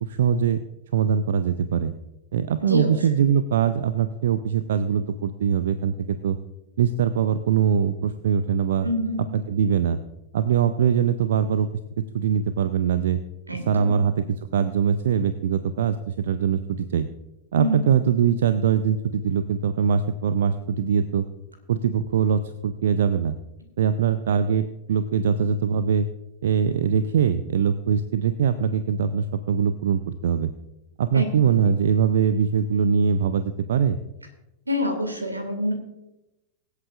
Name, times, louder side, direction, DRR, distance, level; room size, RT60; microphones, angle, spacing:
voice 1, 0.0-0.6 0.9-1.9 2.3-6.4 6.8-8.9 9.5-10.0 10.3-11.7 12.1-13.2 13.7-17.1 17.5-21.2 21.7-23.3 23.8-26.1 26.4-30.5 31.0-34.0, right 7 dB, 60° right, 13 dB, 0.5 m, -22 dB
voice 2, 2.6-2.9 8.8-9.4 13.5-14.0 17.6-17.9 31.1-31.5 34.7-35.7, left 1 dB, 80° right, 5 dB, 2.2 m, -27 dB
24.0 x 8.2 x 2.5 m, 0.93 s
figure-of-eight pair, 90°, 0 cm